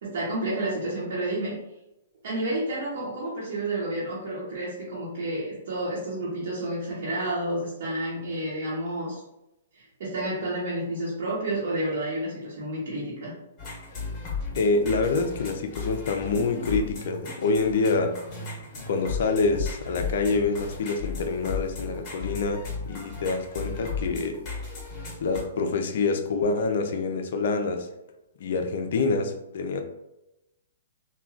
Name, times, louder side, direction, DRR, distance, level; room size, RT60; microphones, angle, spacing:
voice 1, 0.0-1.6 2.2-9.2 9.7-13.3, right 1 dB, 65° right, -8 dB, 0.9 m, -30 dB
sound 1, 13.6-25.4, left 4 dB, 30° left, 1.1 m, -35 dB
voice 2, 14.5-18.2 18.9-24.4 25.2-27.9 28.4-29.8, left 3 dB, 65° left, 6 dB, 0.4 m, -26 dB
3.1 x 2.2 x 2.4 m, 0.89 s
hypercardioid pair, 135°, 0 cm